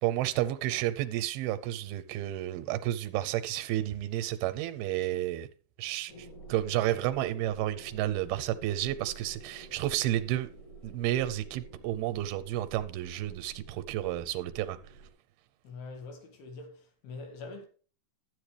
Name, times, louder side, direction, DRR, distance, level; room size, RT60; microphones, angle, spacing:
voice 1, 0.0-5.5 5.8-10.5 10.8-14.8, right 13 dB, 85° right, 2.5 m, -31 dB
sound 1, 6.1-15.1, right 2 dB, 55° left, 3.2 m, -49 dB
voice 2, 15.6-17.7, left 3 dB, 85° left, 3.8 m, -44 dB
12.5 x 8.5 x 3.3 m
omnidirectional pair, 4.4 m